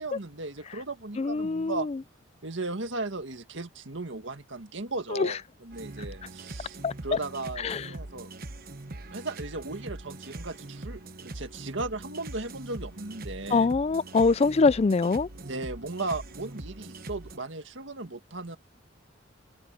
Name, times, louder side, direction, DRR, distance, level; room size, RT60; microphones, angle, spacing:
voice 1, 0.0-1.9 2.4-8.3 9.1-13.7 15.4-18.6, right 2 dB, 70° right, 1.9 m, -36 dB
voice 2, 1.2-2.0 5.1-5.3 6.8-7.2 7.6-7.9 13.5-15.3, left 4 dB, 30° left, 0.4 m, -24 dB
sound 1, 5.7-17.4, right 2 dB, 50° right, 1.2 m, -42 dB
head